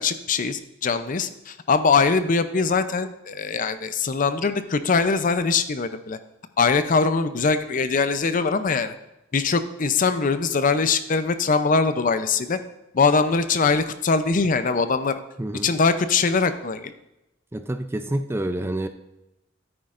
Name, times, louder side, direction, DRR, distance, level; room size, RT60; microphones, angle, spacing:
voice 1, 0.0-6.2 6.6-8.9 9.3-12.6 12.9-15.2 15.6-16.9, left 4 dB, 45° left, 11 dB, 0.5 m, -22 dB
voice 2, 17.5-18.9, right 1 dB, 10° right, 9 dB, 0.4 m, -27 dB
13.0 x 9.5 x 2.5 m, 0.91 s
head